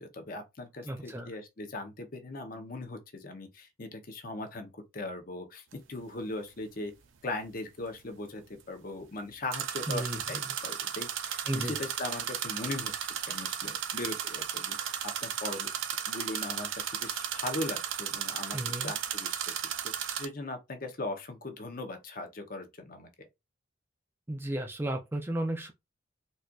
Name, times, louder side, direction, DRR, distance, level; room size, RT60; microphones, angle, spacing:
voice 1, 0.0-6.9 7.2-15.7 16.1-19.4 20.0-23.1, left 2 dB, 45° left, 0.7 m, -39 dB
voice 2, 0.8-1.4 9.9-10.4 11.5-11.8 18.5-18.9 24.3-25.7, right 1 dB, 10° right, 0.3 m, -34 dB
sound 1, 5.7-5.8 9.5-20.3, right 9 dB, 75° right, 0.5 m, -35 dB
4.1 x 2.4 x 2.3 m
head